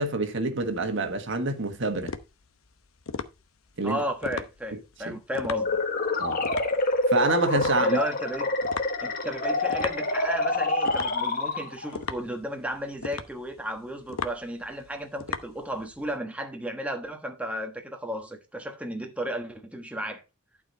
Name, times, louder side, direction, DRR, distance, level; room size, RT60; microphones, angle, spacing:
voice 1, 0.0-2.1 3.8-4.0 5.1-5.2 6.2-6.4 7.1-8.0, right 2 dB, 65° right, 1.4 m, -27 dB
sound 1, 0.6-16.1, left 5 dB, 85° left, 0.9 m, -39 dB
voice 2, 3.8-5.8 7.8-8.5 9.0-20.2, equal, 5° right, 1.2 m, -34 dB
sound 2, 5.5-12.0, left 2 dB, 45° left, 1.3 m, -27 dB
11.5 x 4.8 x 4.0 m
head